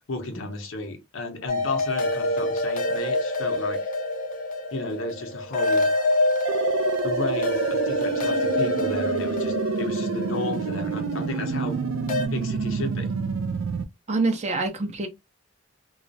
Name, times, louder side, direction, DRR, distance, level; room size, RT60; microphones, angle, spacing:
voice 1, 0.1-3.9 4.7-5.9 7.0-11.9 12.3-13.1, left 2 dB, 75° left, 0.7 m, -33 dB
sound 1, 1.5-12.3, left 2 dB, 40° left, 0.5 m, -27 dB
sound 2, 6.4-13.8, right 5 dB, 75° right, 0.3 m, -28 dB
voice 2, 14.1-15.1, right 3 dB, 35° right, 0.6 m, -25 dB
2.3 x 2.0 x 2.6 m
head